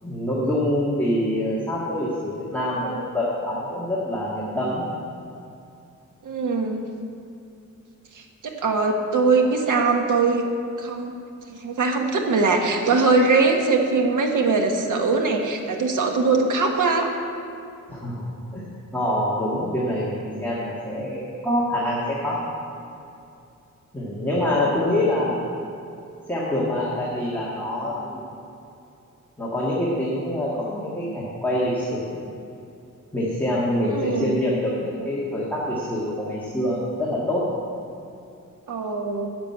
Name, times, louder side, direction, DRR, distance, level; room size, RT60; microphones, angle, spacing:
voice 1, 0.0-4.8 17.9-18.6 18.9-22.5 23.9-25.3 26.3-28.3 29.4-32.2 33.1-37.5, left 1 dB, 5° left, -8 dB, 1.8 m, -25 dB
voice 2, 6.2-6.8 8.1-10.4 10.8-11.1 11.5-17.1 33.9-34.4 38.7-39.3, right 4 dB, 75° right, 2 dB, 1.5 m, -21 dB
10.0 x 7.5 x 8.6 m, 2.6 s
wide cardioid pair, 165°, 31 cm